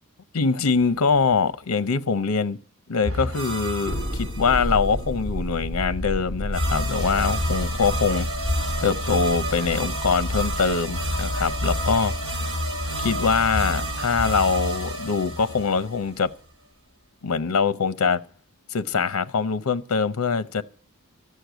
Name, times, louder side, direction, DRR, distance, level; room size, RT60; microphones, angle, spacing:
voice 1, 0.3-2.6 2.9-8.3 8.8-12.1 13.0-16.3 17.2-18.2 18.7-20.6, left 5 dB, 75° left, 0.7 m, -23 dB
sound 1, 3.0-4.9 6.5-16.3, equal, 70° right, 3.0 m, -28 dB
Thunder, 3.9-14.5, equal, 5° right, 6.0 m, -33 dB
14.0 x 6.5 x 9.1 m
head